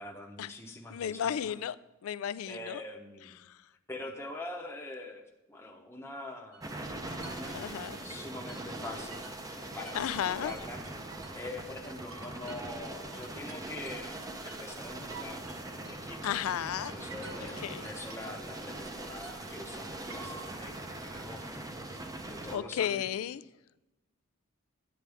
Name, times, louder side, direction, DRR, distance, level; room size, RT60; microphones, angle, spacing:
voice 1, 0.0-1.5 2.4-3.4 3.9-5.2 5.5-6.7 7.2-9.2 9.7-10.8 11.1-15.4 15.7-16.4 16.9-23.0, left 2 dB, 10° left, 1 dB, 0.8 m, -44 dB
voice 2, 0.9-1.8 2.0-2.8 3.4-3.6 7.5-8.0 9.9-10.5 16.2-17.0 17.6-17.9 22.5-23.4, left 9 dB, 75° left, 17 dB, 0.3 m, -33 dB
sound 1, 6.5-9.6 9.9-11.6 11.8-18.6 18.9-20.6, right 4 dB, 70° right, 0.9 m, -51 dB
sound 2, 6.6-22.6, right 2 dB, 15° right, 0.6 m, -42 dB
9.5 x 8.4 x 3.5 m, 1.0 s
head